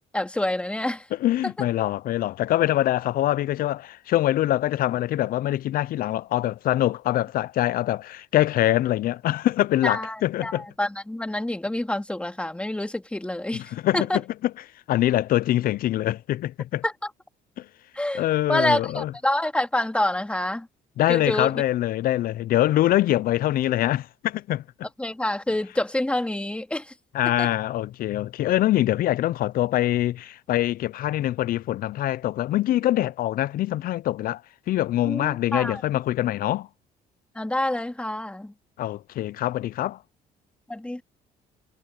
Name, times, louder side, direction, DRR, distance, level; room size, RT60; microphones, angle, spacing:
voice 1, 0.1-1.1 1.4-1.5 9.8-13.6 13.9-14.2 16.8-16.9 17.9-18.2 18.5-20.7 21.1-21.5 25.0-26.9 27.4-27.5 35.0-35.8 37.4-38.5 40.7-41.0, left 1 dB, 5° left, 2.4 m, -27 dB
voice 2, 1.1-10.7 13.5-14.5 14.9-16.8 17.6-17.7 18.1-19.1 21.0-24.6 27.1-34.4 34.7-36.7 38.8-40.0, left 14 dB, 60° left, 0.5 m, -24 dB
cardioid pair, 110°, 17 cm